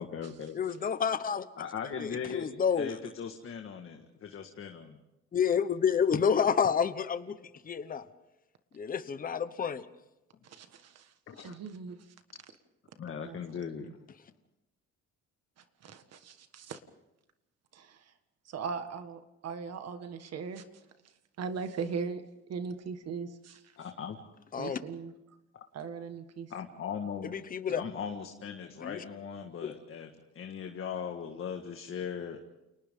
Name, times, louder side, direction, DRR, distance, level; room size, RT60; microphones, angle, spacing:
voice 1, 0.0-0.6 1.6-5.0 11.3-11.6 13.0-14.0 23.8-24.2 26.5-27.4 27.8-32.4, left 7 dB, 45° left, 4 dB, 1.7 m, -39 dB
voice 2, 0.5-1.5 2.0-2.9 5.3-7.4 7.6-8.0 8.7-9.8 24.5-24.8 27.2-27.8 28.8-29.0 29.6-29.7, left 7 dB, 30° left, 12 dB, 1.0 m, -29 dB
voice 3, 10.4-12.0 13.2-13.9 15.8-16.8 17.7-18.1 18.5-20.6 21.4-22.2 22.5-23.7 24.6-25.1 25.7-26.5 27.7-27.9, right 5 dB, 55° right, 8 dB, 1.7 m, -39 dB
30.0 x 29.0 x 3.8 m, 0.94 s
cardioid pair, 160°, 30 cm